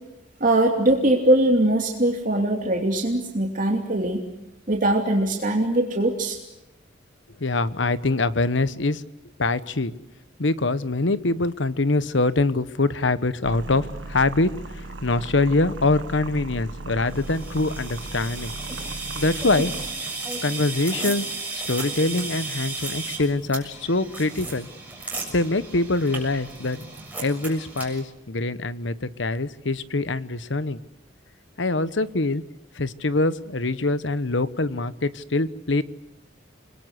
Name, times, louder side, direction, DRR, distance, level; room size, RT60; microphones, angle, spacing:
voice 1, 0.4-4.2 4.7-6.4, right 1 dB, 45° right, 1 dB, 2.9 m, -21 dB
voice 2, 7.4-9.0 9.4-9.9 10.4-18.6 19.1-19.7 20.4-24.7 25.3-26.9 27.2-30.8 31.6-32.4 32.7-35.8, left 2 dB, 75° left, 14 dB, 1.2 m, -24 dB
sound 1, 13.4-19.9, right 2 dB, 80° right, 1.7 m, -37 dB
sound 2, 17.1-28.0, right 3 dB, 10° right, 6.9 m, -34 dB
29.0 x 21.5 x 8.2 m, 0.91 s
head